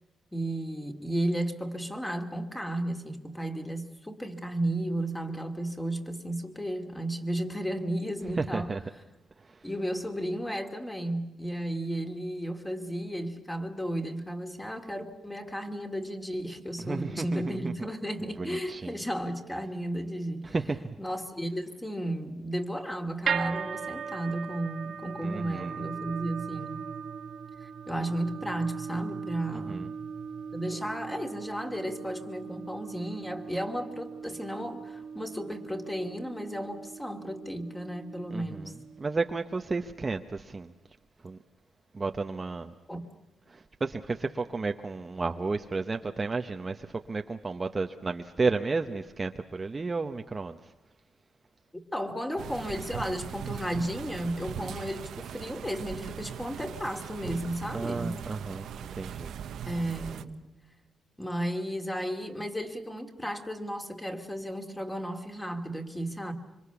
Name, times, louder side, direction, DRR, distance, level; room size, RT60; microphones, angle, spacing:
voice 1, 0.3-9.0 9.6-20.5 21.0-26.8 27.6-29.9 30.5-38.7 42.9-43.1 51.9-58.3 59.6-60.4 61.2-66.3, right 1 dB, 10° left, 2.5 m, -34 dB
voice 2, 8.4-8.8 16.9-17.7 18.4-19.0 20.5-20.8 25.2-25.7 29.7-29.9 38.3-38.6 39.0-40.7 41.2-41.4 41.9-42.7 43.8-50.6 57.7-58.7 59.0-59.3, right 3 dB, 25° right, 0.9 m, -32 dB
sound 1, 23.3-39.5, right 6 dB, 55° right, 1.5 m, -39 dB
sound 2, 52.4-60.2, right 9 dB, 75° right, 1.0 m, -40 dB
26.0 x 25.0 x 7.0 m
cardioid pair, 125°, 0 cm